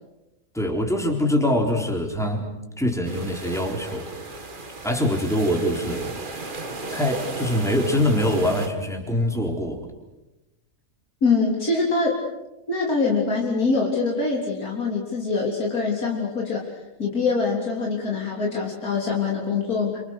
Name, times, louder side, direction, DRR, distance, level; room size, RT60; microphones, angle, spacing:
voice 1, 0.5-2.5 2.8-4.1 4.8-6.1 6.9-9.9, left 1 dB, ahead, 1 dB, 4.0 m, -23 dB
sound 1, 3.0-8.7, right 3 dB, 35° right, 1.9 m, -35 dB
voice 2, 11.2-12.2 12.7-16.7 17.0-20.0, left 4 dB, 80° left, -2 dB, 4.1 m, -24 dB
28.5 x 26.0 x 6.5 m, 0.99 s
omnidirectional pair, 1.5 m